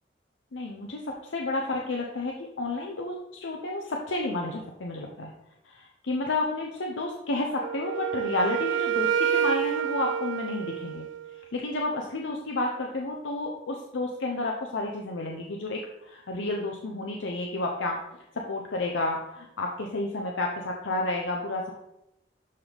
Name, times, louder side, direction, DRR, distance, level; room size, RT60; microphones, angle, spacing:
voice 1, 0.5-5.3 5.6-11.1 11.5-18.0 18.3-21.7, left 2 dB, 85° left, 0 dB, 0.8 m, -31 dB
Wind instrument woodwind instrument, 7.6-11.5, right 9 dB, 85° right, 0.3 m, -28 dB
12.0 x 4.0 x 3.5 m, 0.86 s
head